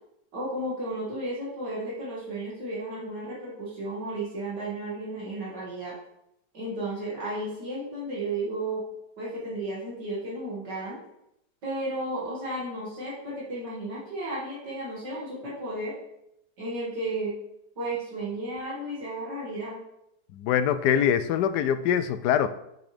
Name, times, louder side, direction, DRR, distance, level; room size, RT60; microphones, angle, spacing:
voice 1, 0.3-5.9 6.5-8.8 9.2-11.0 11.6-15.9 16.6-17.4 17.8-19.8, right 1 dB, 85° right, -7 dB, 2.8 m, -33 dB
voice 2, 20.3-22.5, left 9 dB, 80° left, 11 dB, 1.1 m, -23 dB
7.4 x 6.0 x 3.4 m, 0.79 s
omnidirectional pair, 1.8 m